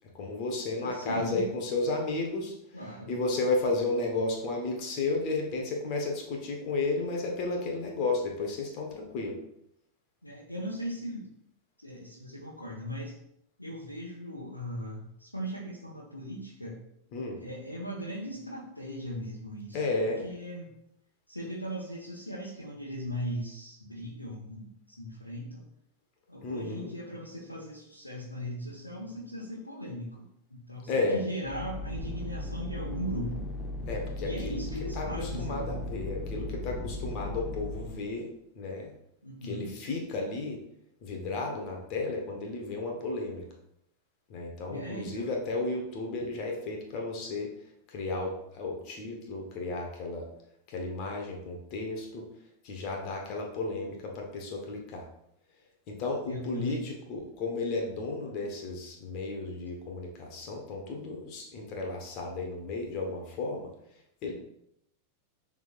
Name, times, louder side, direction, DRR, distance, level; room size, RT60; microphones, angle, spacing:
voice 1, 0.1-9.4 17.1-17.4 19.7-20.3 26.4-26.9 30.9-31.2 33.8-38.3 38.5-38.9 39.4-40.6 41.0-43.5 44.3-47.5 47.9-50.3 50.7-52.3 52.6-55.0 55.9-63.7 64.2-64.3, left 3 dB, 40° left, 1 dB, 1.2 m, -33 dB
voice 2, 0.8-1.5 2.7-3.2 10.2-11.3 11.8-13.2 13.6-16.8 17.4-20.7 21.3-25.7 26.3-30.2 30.5-33.4 34.2-35.7 39.2-39.7 44.7-45.3 56.3-56.9, equal, 85° left, -5 dB, 1.2 m, -38 dB
sound 1, 31.4-38.0, left 2 dB, 20° left, 1.3 m, -37 dB
10.5 x 3.6 x 2.5 m, 0.78 s
figure-of-eight pair, 90°, 0 cm